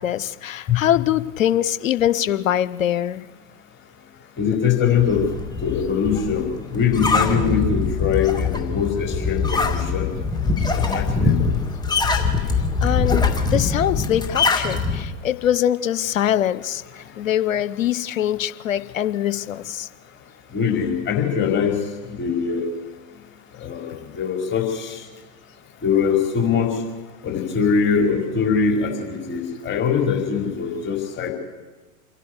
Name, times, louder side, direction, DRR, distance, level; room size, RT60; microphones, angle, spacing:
voice 1, 0.0-3.2 12.4-12.5 12.8-19.9, left 11 dB, 70° left, 15 dB, 0.9 m, -23 dB
voice 2, 4.4-5.2 5.6-10.1 10.8-11.6 20.5-21.7 22.2-22.6 23.6-25.0 25.8-26.7 27.2-31.3, left 6 dB, 25° left, 1 dB, 5.0 m, -22 dB
sound 1, 5.0-15.0, left 4 dB, 10° left, 2.3 m, -23 dB
28.5 x 11.0 x 8.2 m, 1.2 s
figure-of-eight pair, 85°, 41 cm